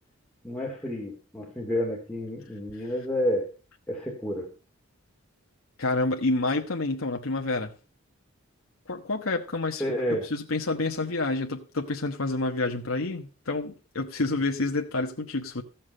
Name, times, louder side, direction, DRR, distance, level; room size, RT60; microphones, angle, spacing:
voice 1, 0.4-3.5 3.9-4.5 9.8-10.3, left 1 dB, 5° left, 2.6 m, -30 dB
voice 2, 5.8-7.7 8.9-9.8 10.2-15.6, left 2 dB, 80° left, 1.3 m, -28 dB
15.0 x 7.3 x 5.4 m
head